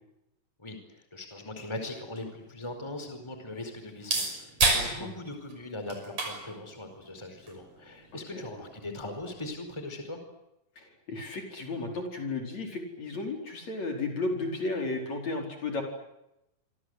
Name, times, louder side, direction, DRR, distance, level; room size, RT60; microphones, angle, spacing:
voice 1, 1.1-10.2, left 2 dB, 5° left, 6 dB, 4.6 m, -40 dB
sound 1, 1.6-9.6, right 3 dB, 45° right, 7.2 m, -34 dB
voice 2, 4.7-5.1 8.1-8.4 10.8-15.8, left 3 dB, 50° left, 2 dB, 5.9 m, -34 dB
28.0 x 25.5 x 8.1 m, 0.88 s
omnidirectional pair, 4.2 m